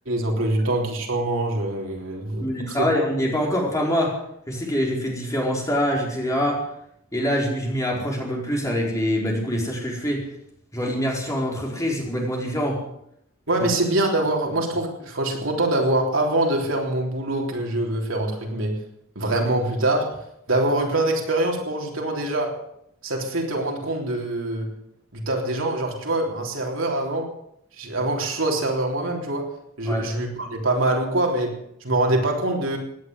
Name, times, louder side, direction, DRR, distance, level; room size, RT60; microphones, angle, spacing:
voice 1, 0.1-2.9 13.5-18.8 19.2-22.6 23.0-24.7 25.1-27.3 27.8-29.5 29.8-31.6 31.8-32.8, right 1 dB, 70° right, 1 dB, 3.6 m, -24 dB
voice 2, 2.4-4.2 4.5-6.7 7.1-10.3 10.7-12.8 29.9-30.1, equal, 15° left, -2 dB, 4.6 m, -25 dB
17.5 x 10.5 x 7.8 m, 0.74 s
head